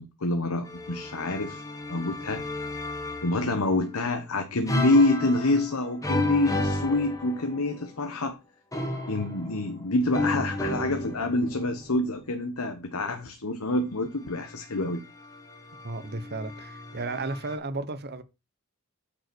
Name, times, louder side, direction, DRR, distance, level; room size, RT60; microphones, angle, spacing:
voice 1, 0.0-1.6 1.9-2.4 3.2-8.4 9.1-15.0, left 2 dB, 75° left, 1.3 m, -27 dB
sound 1, 0.6-3.8 4.7-7.8 8.7-12.1 14.2-17.5, left 1 dB, 15° left, 2.0 m, -33 dB
voice 2, 15.8-18.2, right 3 dB, 50° right, 1.1 m, -34 dB
8.7 x 5.3 x 6.2 m
head